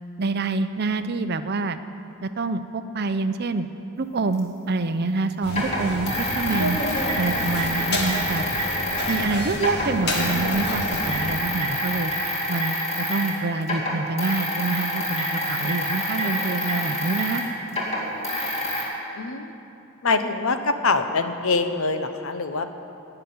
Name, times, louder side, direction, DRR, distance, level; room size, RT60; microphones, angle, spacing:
voice 1, 0.2-1.8 2.2-3.7 4.0-6.8 7.2-8.5 9.1-12.1 12.5-17.5, right 3 dB, 45° right, 10 dB, 0.5 m, -26 dB
sound 1, 4.4-4.5 5.5-9.3 9.5-13.4 13.6-18.8, equal, 30° left, 2.3 m, -27 dB
sound 2, 5.4-11.3, left 1 dB, 50° left, 1.9 m, -29 dB
voice 2, 19.2-19.5 20.0-22.8, left 3 dB, 65° left, 9 dB, 0.8 m, -24 dB
17.0 x 5.9 x 9.4 m, 2.9 s
head